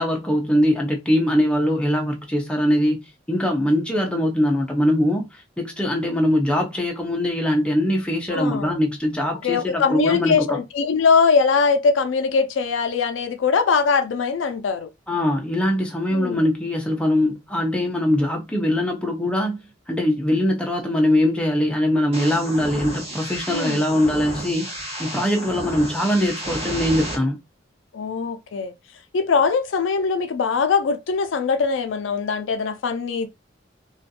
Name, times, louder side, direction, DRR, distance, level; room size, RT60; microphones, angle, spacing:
voice 1, 0.0-3.0 3.3-10.6 15.1-24.7 25.0-27.4, left 1 dB, 5° left, 0.5 m, -22 dB
voice 2, 8.3-8.8 9.4-14.9 16.1-16.5 23.5-23.8 27.9-28.7 29.1-33.3, left 5 dB, 80° left, 0.4 m, -21 dB
sound 1, 22.1-27.2, right 1 dB, 35° right, 0.9 m, -32 dB
2.4 x 2.3 x 2.6 m
head